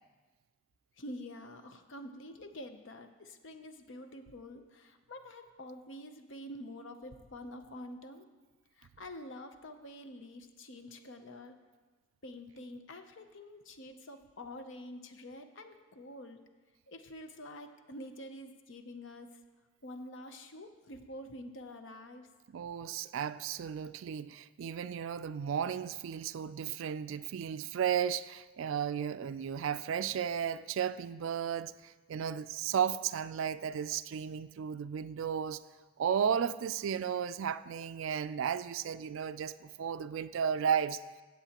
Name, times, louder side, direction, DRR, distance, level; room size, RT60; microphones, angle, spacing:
voice 1, 1.0-8.3 8.8-11.6 12.2-16.4 16.9-19.3 19.8-22.3, left 1 dB, 55° left, 0.7 m, -47 dB
voice 2, 22.5-35.6 36.0-41.0, right 8 dB, 65° right, 0.3 m, -34 dB
17.0 x 7.6 x 2.9 m
head